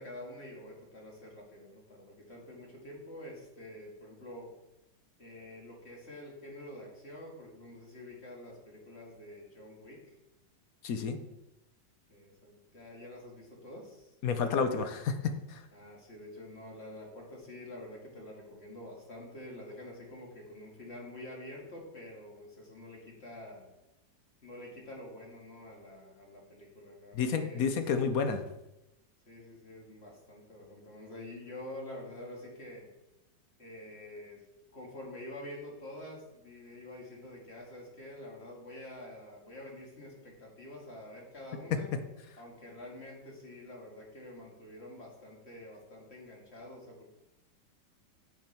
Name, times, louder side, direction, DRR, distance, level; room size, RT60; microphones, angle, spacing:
voice 1, 0.0-4.5 5.2-10.2 12.1-14.2 15.7-23.7 24.4-27.7 29.3-32.9 33.6-34.4 34.7-42.0 42.4-47.1, left 1 dB, 35° left, -2 dB, 2.1 m, -47 dB
voice 2, 10.8-11.2 14.2-15.2 15.5-15.6 27.2-28.4, left 5 dB, 60° left, 8 dB, 1.0 m, -30 dB
8.7 x 6.1 x 4.4 m, 0.94 s
omnidirectional pair, 2.0 m